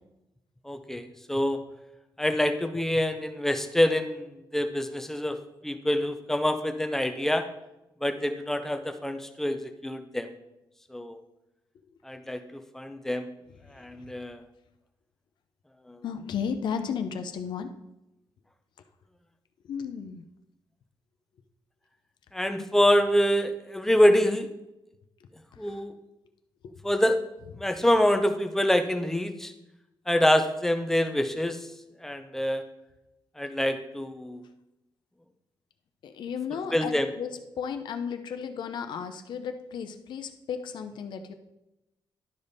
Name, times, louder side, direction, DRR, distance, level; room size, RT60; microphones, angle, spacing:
voice 1, 0.7-1.6 2.2-4.3 4.5-5.4 5.6-7.4 8.0-10.3 10.9-11.2 12.1-13.2 13.7-14.4 15.9-16.0 22.3-24.5 25.6-25.9 26.8-27.2 27.6-29.5 30.1-31.6 32.0-32.6 33.4-34.4 36.7-37.1, left 1 dB, 5° left, 7 dB, 0.6 m, -25 dB
voice 2, 16.0-17.7 19.7-20.2 25.6-25.8 36.0-37.3 37.6-41.3, left 7 dB, 65° left, 7 dB, 0.7 m, -34 dB
11.5 x 5.2 x 4.1 m, 0.92 s
wide cardioid pair, 165°, 8 cm